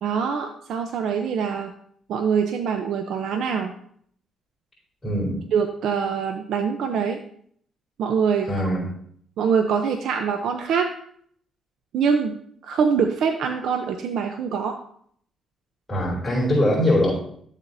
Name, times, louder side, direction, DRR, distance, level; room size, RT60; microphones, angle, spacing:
voice 1, 0.0-1.7 2.1-3.7 5.5-7.2 8.0-8.5 9.4-10.9 11.9-12.4 12.6-14.8, right 6 dB, 75° right, 5 dB, 0.7 m, -24 dB
voice 2, 5.0-5.4 8.5-8.9 15.9-17.1, left 1 dB, 20° left, -5 dB, 4.0 m, -22 dB
12.5 x 7.3 x 2.7 m, 0.63 s
cardioid pair, 90°, 0 cm